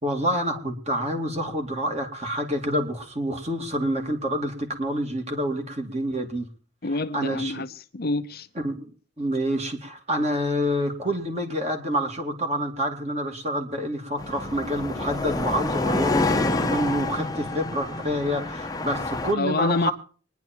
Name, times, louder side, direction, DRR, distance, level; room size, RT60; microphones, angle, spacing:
voice 1, 0.0-6.5 7.1-7.6 8.6-8.9 9.2-19.9, equal, 30° right, 2.6 m, -27 dB
voice 2, 6.8-8.5 19.4-19.9, left 3 dB, 45° left, 0.8 m, -27 dB
sound 1, 14.2-19.3, left 2 dB, 15° left, 0.9 m, -28 dB
24.0 x 10.5 x 4.6 m
head